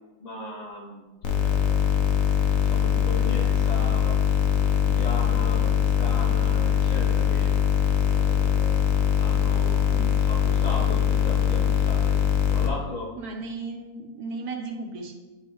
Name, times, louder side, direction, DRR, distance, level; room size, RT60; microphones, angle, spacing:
voice 1, 0.2-1.0 1.4-1.9 2.4-4.2 4.5-7.6 8.0-8.9 9.2-10.0 10.3-12.2 12.5-13.2, left 2 dB, 35° left, -4 dB, 0.7 m, -37 dB
sound 1, 1.2-12.7, left 8 dB, 70° left, 1.1 m, -22 dB
voice 2, 13.1-15.2, right 3 dB, 90° right, 2 dB, 1.4 m, -35 dB
9.6 x 3.7 x 3.1 m, 1.2 s
omnidirectional pair, 1.6 m